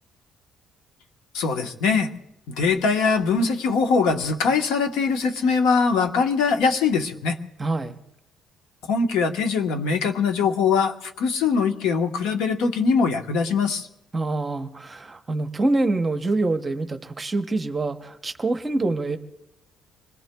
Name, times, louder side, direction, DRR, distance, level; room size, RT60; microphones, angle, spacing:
voice 1, 1.3-2.1 2.5-7.4 8.9-13.9, left 5 dB, 90° left, 5 dB, 1.2 m, -22 dB
voice 2, 7.6-8.0 14.1-19.2, right 2 dB, 20° right, 8 dB, 0.8 m, -25 dB
26.5 x 21.0 x 2.3 m, 0.86 s
cardioid pair, 160°, 0 cm